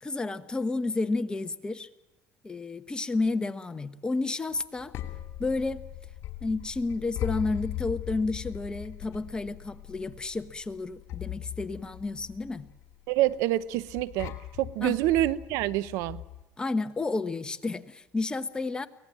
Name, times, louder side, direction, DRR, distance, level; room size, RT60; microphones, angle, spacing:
voice 1, 0.0-1.9 2.4-4.9 5.4-5.8 6.4-12.7 14.8-15.0 16.6-18.9, left 3 dB, 15° left, 1.1 m, -31 dB
sound 1, 4.5-16.4, left 13 dB, 60° left, 2.8 m, -40 dB
voice 2, 13.1-16.2, right 15 dB, 80° right, 0.8 m, -27 dB
24.0 x 18.0 x 7.5 m
cardioid pair, 110°, 5 cm